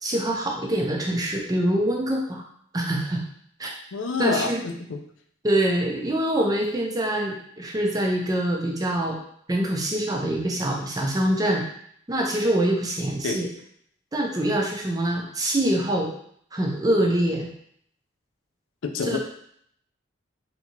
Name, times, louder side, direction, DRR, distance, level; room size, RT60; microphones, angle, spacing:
voice 1, 0.0-2.4 2.7-3.2 3.6-3.7 4.2-4.6 5.4-9.2 9.5-11.7 12.1-13.5 14.1-16.1 16.5-17.5 19.0-19.2, right 1 dB, 20° right, 0 dB, 0.5 m, -24 dB
voice 2, 3.9-5.0 13.2-13.4 18.8-19.2, left 4 dB, 75° left, 5 dB, 0.4 m, -27 dB
3.5 x 2.8 x 2.9 m, 0.66 s
head